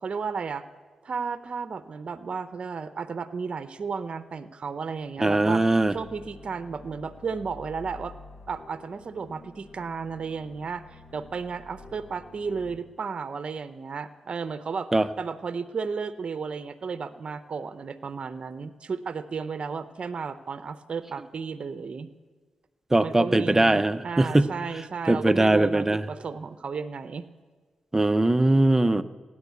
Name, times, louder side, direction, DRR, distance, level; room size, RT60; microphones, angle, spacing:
voice 1, 0.0-0.7 1.0-5.6 5.9-8.2 8.5-14.9 15.2-22.1 23.0-27.2, right 5 dB, 55° right, 12 dB, 0.7 m, -33 dB
voice 2, 5.2-5.9 14.9-15.1 22.9-24.5 25.1-26.0 27.9-29.0, right 2 dB, 20° right, 13 dB, 0.6 m, -21 dB
sound 1, 5.5-12.8, left 3 dB, 70° left, 1.8 m, -49 dB
16.0 x 10.0 x 8.2 m, 1.4 s
cardioid pair, 55°, 2 cm